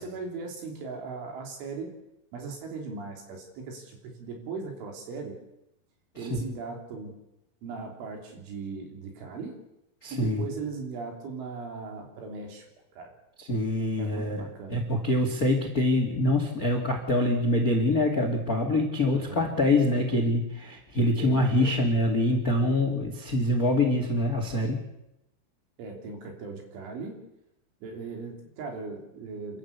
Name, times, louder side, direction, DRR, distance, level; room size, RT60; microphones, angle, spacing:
voice 1, 0.0-1.9 2.3-5.4 6.2-7.2 7.6-9.6 10.1-13.1 14.0-14.8 19.1-19.6 21.2-21.8 25.8-27.3 27.8-29.6, right 4 dB, 65° right, 3 dB, 5.8 m, -38 dB
voice 2, 10.0-10.4 13.4-14.4 14.7-24.8, left 1 dB, 40° left, 4 dB, 1.3 m, -25 dB
29.0 x 12.5 x 8.3 m, 0.87 s
omnidirectional pair, 6.0 m